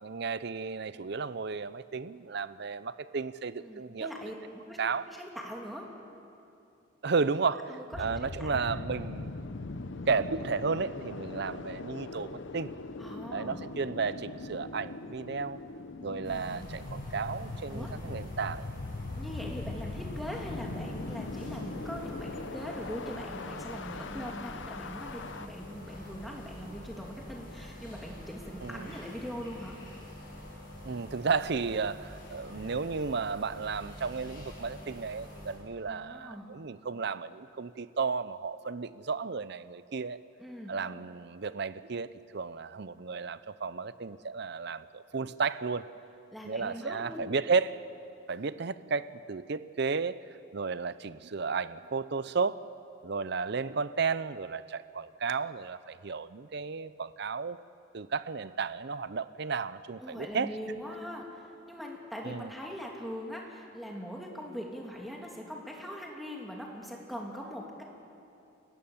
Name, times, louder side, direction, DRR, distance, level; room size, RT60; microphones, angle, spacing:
voice 1, 0.0-4.1 4.8-5.1 7.0-9.3 10.1-12.7 13.3-15.6 16.0-18.7 28.6-28.9 30.8-40.2 40.7-45.8 46.4-47.9 48.3-50.2 50.5-52.6 53.0-57.6 57.9-60.5 62.2-62.5, right 5 dB, 55° right, 15 dB, 0.6 m, -33 dB
voice 2, 3.6-4.3 4.7-4.8 5.0-5.9 7.7-8.8 13.0-13.6 17.7-17.9 19.2-29.8 35.9-36.5 40.4-40.8 46.3-47.3 60.0-67.8, equal, ahead, -2 dB, 2.8 m, -41 dB
sound 1, 7.9-25.5, left 3 dB, 65° left, 0.8 m, -41 dB
sound 2, 16.2-35.6, left 1 dB, 45° left, 7.1 m, -46 dB
29.5 x 15.5 x 7.2 m, 2.6 s
head